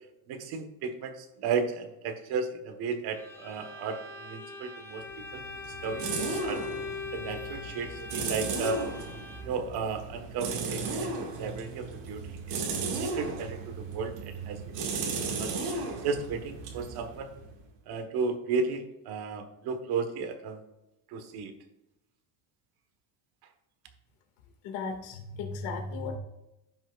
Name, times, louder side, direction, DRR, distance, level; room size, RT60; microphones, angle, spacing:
voice 1, 0.3-5.0 5.3-5.4 5.8-6.6 7.1-8.9 9.4-14.6 14.9-17.3 17.9-20.6 21.1-21.6, right 5 dB, 60° right, 7 dB, 1.5 m, -34 dB
Bowed string instrument, 3.1-9.7, left 4 dB, 5° left, 0.7 m, -41 dB
sound 1, 5.0-17.7, right 4 dB, 80° right, 2.1 m, -35 dB
voice 2, 24.6-26.2, left 4 dB, 85° left, 2 dB, 2.2 m, -35 dB
15.5 x 5.9 x 2.5 m, 0.95 s
cardioid pair, 150°, 43 cm